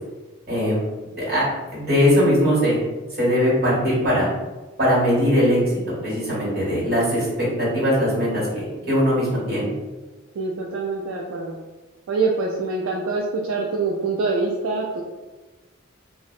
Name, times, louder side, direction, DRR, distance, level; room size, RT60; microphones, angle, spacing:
voice 1, 0.5-0.8 1.0-1.4 1.7-2.8 3.2-4.3 4.8-5.6 5.9-9.7, equal, 50° right, -7 dB, 1.4 m, -20 dB
voice 2, 10.3-11.6 12.1-15.0, right 3 dB, 85° right, -1 dB, 0.3 m, -25 dB
2.6 x 2.0 x 2.4 m, 1.2 s
head